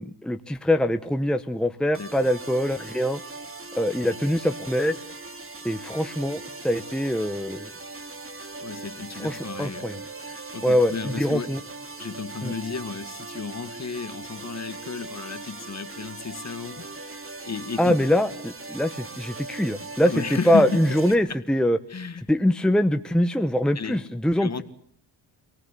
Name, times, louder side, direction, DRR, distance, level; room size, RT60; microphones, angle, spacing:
voice 1, 0.0-3.2 3.7-5.0 5.6-7.7 9.2-10.0 10.6-11.6 12.4-12.5 17.8-21.8 22.3-24.6, equal, ahead, 8 dB, 1.0 m, -23 dB
sound 1, 1.9-21.1, right 3 dB, 30° right, 2.8 m, -39 dB
voice 2, 8.6-10.0 10.3-11.6 12.0-18.1 20.0-20.8 21.3-21.4 21.9-22.2 23.8-24.1 24.4-24.6, left 5 dB, 40° left, 9 dB, 2.0 m, -33 dB
26.5 x 18.5 x 8.2 m, 0.66 s
cardioid pair, 85°, 43 cm